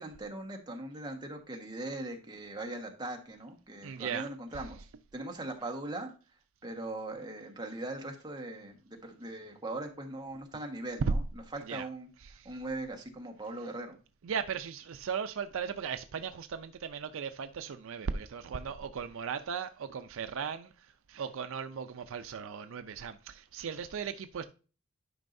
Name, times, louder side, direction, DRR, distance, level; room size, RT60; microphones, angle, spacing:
voice 1, 0.0-4.8 5.1-6.1 6.6-12.1 12.4-14.0, right 2 dB, 20° right, 1.3 m, -40 dB
voice 2, 3.8-4.3 11.0-11.1 11.7-11.9 12.4-12.5 14.2-24.4, right 6 dB, 70° right, 0.4 m, -37 dB
11.0 x 5.4 x 2.6 m
head